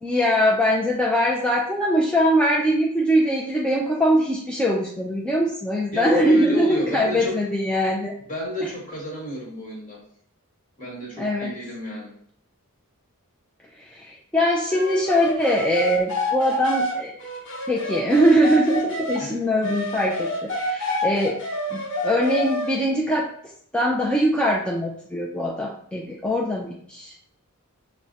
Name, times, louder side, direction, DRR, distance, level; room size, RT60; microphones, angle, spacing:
voice 1, 0.0-8.1 8.6-8.7 11.2-11.5 13.8-17.1 17.7-21.4 21.7-23.3 23.7-27.1, equal, 5° left, -4 dB, 0.3 m, -22 dB
voice 2, 5.9-7.4 8.3-10.0 10.8-12.1 19.2-19.4, equal, 35° left, -4 dB, 1.3 m, -32 dB
sound 1, 14.7-19.2 19.6-22.8, left 1 dB, 55° left, 0.9 m, -28 dB
5.8 x 2.1 x 2.6 m, 0.63 s
head